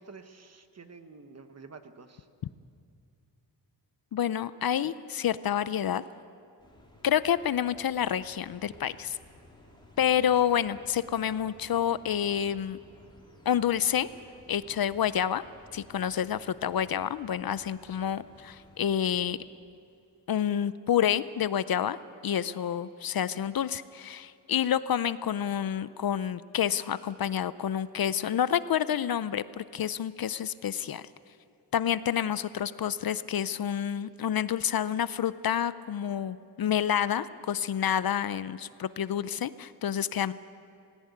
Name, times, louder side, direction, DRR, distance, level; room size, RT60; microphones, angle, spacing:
voice 1, 0.0-2.3, right 4 dB, 35° right, 8 dB, 1.2 m, -49 dB
voice 2, 4.1-6.0 7.0-9.2 10.0-12.8 13.5-14.1 14.5-15.4 15.7-19.4 20.3-22.0 22.2-31.1 31.7-40.3, left 9 dB, 55° left, 15 dB, 0.6 m, -28 dB
sound 1, 6.6-19.3, left 1 dB, 10° left, 3.0 m, -56 dB
18.5 x 17.0 x 9.5 m, 2.5 s
wide cardioid pair, 135°, 43 cm